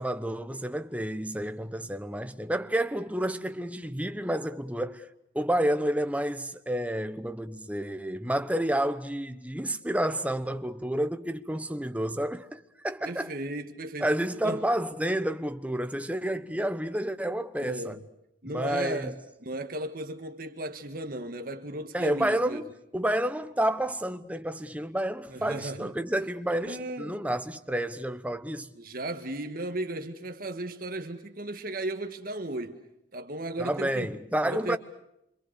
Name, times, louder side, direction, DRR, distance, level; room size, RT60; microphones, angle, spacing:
voice 1, 0.0-5.1 5.3-13.3 14.0-18.0 18.4-19.1 21.9-28.7 33.6-34.8, right 1 dB, 5° right, 1.0 m, -30 dB
voice 2, 13.0-14.1 14.4-14.6 17.6-18.0 18.4-19.1 19.4-22.6 25.3-25.9 26.6-27.2 28.8-32.8 33.1-34.1 34.4-34.8, right 1 dB, 50° right, 1.6 m, -35 dB
27.0 x 25.5 x 6.8 m
head